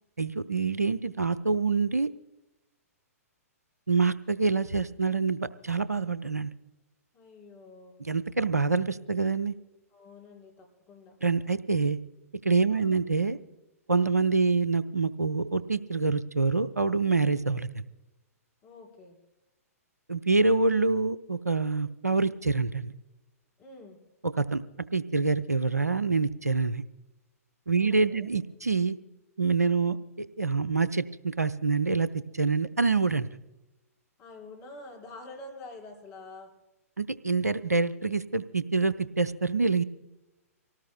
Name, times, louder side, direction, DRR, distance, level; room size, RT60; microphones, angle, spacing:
voice 1, 0.2-2.1 3.9-6.5 8.0-9.6 11.2-12.0 12.4-13.4 13.9-17.8 20.1-22.9 24.4-24.6 24.9-26.8 27.7-29.0 29.4-32.1 32.3-33.3 37.0-39.8, right 4 dB, 85° right, 13 dB, 0.7 m, -26 dB
voice 2, 7.1-8.0 9.9-11.2 12.7-13.0 18.6-19.2 23.6-24.0 27.8-28.3 34.2-36.5, left 2 dB, 25° left, 0 dB, 4.7 m, -47 dB
26.0 x 18.5 x 2.2 m, 0.97 s
figure-of-eight pair, 115°, 8 cm